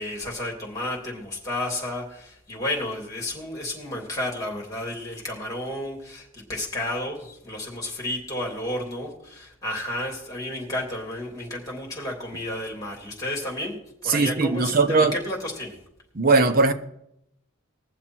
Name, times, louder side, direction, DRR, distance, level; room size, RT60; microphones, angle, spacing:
voice 1, 0.0-13.8 14.0-15.8, left 1 dB, 15° left, 3.1 m, -32 dB
voice 2, 14.1-15.1 16.1-16.7, right 3 dB, 45° right, 0.8 m, -19 dB
20.5 x 7.4 x 4.5 m
head